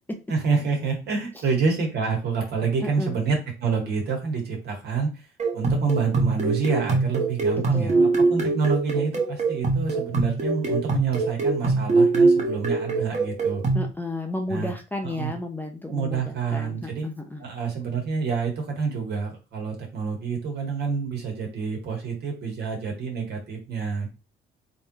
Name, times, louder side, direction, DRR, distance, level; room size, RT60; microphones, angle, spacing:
voice 1, 0.3-5.2 5.5-13.6 14.5-14.7 15.0-15.3 15.9-17.1 17.4-24.1, right 5 dB, 55° right, 1 dB, 2.0 m, -27 dB
voice 2, 2.8-3.2 7.7-8.1 13.7-17.4, left 2 dB, 10° left, 3 dB, 0.7 m, -32 dB
sound 1, 5.4-13.9, right 3 dB, 35° right, 1.1 m, -23 dB
3.8 x 3.1 x 4.1 m, 0.29 s
cardioid pair, 120°, 20 cm